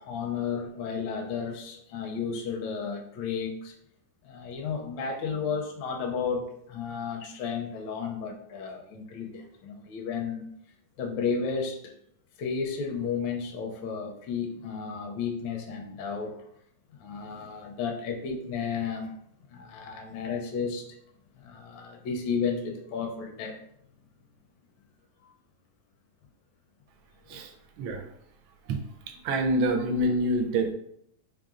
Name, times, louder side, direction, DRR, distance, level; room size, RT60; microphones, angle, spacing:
voice 1, 0.0-3.7 4.2-10.4 11.0-12.0 12.4-16.4 17.0-19.1 19.4-20.9 21.4-23.6 27.3-27.4, left 6 dB, 75° left, 2 dB, 1.2 m, -33 dB
voice 2, 27.3-28.0 28.7-30.7, right 1 dB, 80° right, 5 dB, 1.4 m, -27 dB
3.7 x 3.4 x 2.4 m, 0.73 s
omnidirectional pair, 2.2 m